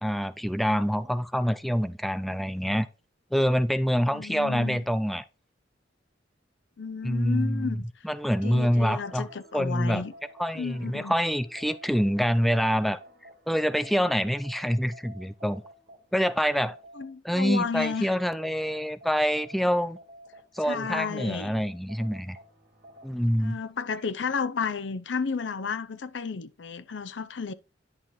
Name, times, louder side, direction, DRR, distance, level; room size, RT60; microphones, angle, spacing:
voice 1, 0.0-2.9 3.3-5.2 7.0-7.8 8.0-9.3 9.5-10.0 10.4-13.0 13.5-15.6 16.1-16.8 17.2-20.0 20.5-22.4 23.0-23.6, equal, ahead, 0.3 m, -26 dB
voice 2, 4.1-4.8 6.8-7.8 8.4-10.1 10.5-11.2 17.0-18.1 20.6-21.5 23.4-27.5, left 5 dB, 85° left, 0.6 m, -32 dB
sound 1, 8.2-17.0 17.4-23.4, right 1 dB, 60° right, 2.2 m, -50 dB
10.5 x 5.7 x 3.1 m
head